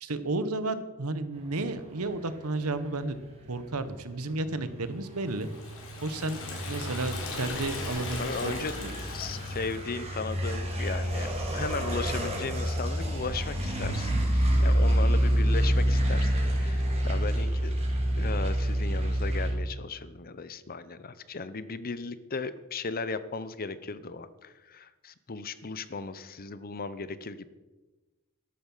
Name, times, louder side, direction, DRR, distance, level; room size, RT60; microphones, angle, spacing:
voice 1, 0.0-3.2 3.5-5.5 6.0-6.4 6.7-8.9, right 2 dB, 75° right, 13 dB, 1.1 m, -32 dB
sound 1, 3.0-19.5, equal, 30° right, 3.5 m, -28 dB
Liquid, 5.3-10.0, left 2 dB, 65° left, 3.8 m, -37 dB
voice 2, 8.1-8.7 9.0-17.7 18.2-27.5, left 4 dB, 40° left, 14 dB, 0.8 m, -36 dB
13.0 x 12.0 x 5.6 m, 1.2 s
head